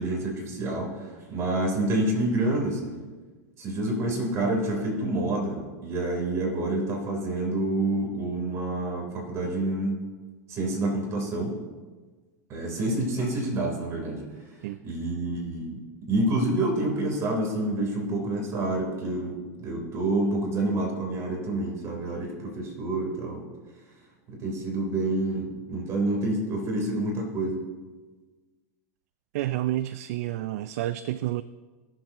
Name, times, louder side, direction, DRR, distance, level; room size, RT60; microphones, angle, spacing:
voice 1, 0.0-3.0 3.6-10.0 10.5-11.6 12.5-14.2 14.6-23.5 24.3-27.6, right 2 dB, 35° right, 0 dB, 3.4 m, -28 dB
voice 2, 29.3-31.4, right 14 dB, 70° right, 14 dB, 0.4 m, -29 dB
20.5 x 7.4 x 3.0 m, 1.4 s
supercardioid pair, 125°, 8 cm